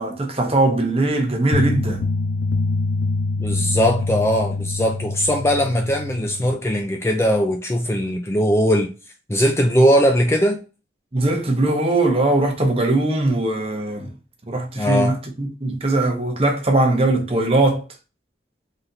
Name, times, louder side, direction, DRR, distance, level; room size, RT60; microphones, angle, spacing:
voice 1, 0.0-2.0 11.1-14.1 14.5-17.8, right 2 dB, 30° right, 0.9 m, -20 dB
sound 1, 1.5-6.5, left 3 dB, 85° left, 0.4 m, -25 dB
voice 2, 3.4-8.9 9.3-10.6 14.8-15.1, equal, 15° left, 0.4 m, -19 dB
3.9 x 3.2 x 2.7 m
head